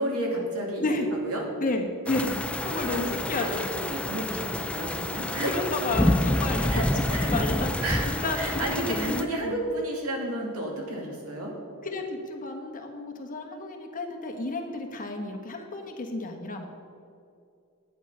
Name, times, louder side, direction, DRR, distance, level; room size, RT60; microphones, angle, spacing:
voice 1, 0.0-0.9 1.2-1.4 2.9-5.5 6.7-7.4 7.8-8.1 8.3-11.5, right 1 dB, 80° right, -1 dB, 2.6 m, -32 dB
voice 2, 1.6-4.0 5.1-9.6 11.8-16.7, left 2 dB, 40° left, 3 dB, 1.3 m, -32 dB
sound 1, 2.1-9.2, left 1 dB, 5° left, 0.5 m, -28 dB
11.0 x 8.8 x 5.5 m, 2.5 s
head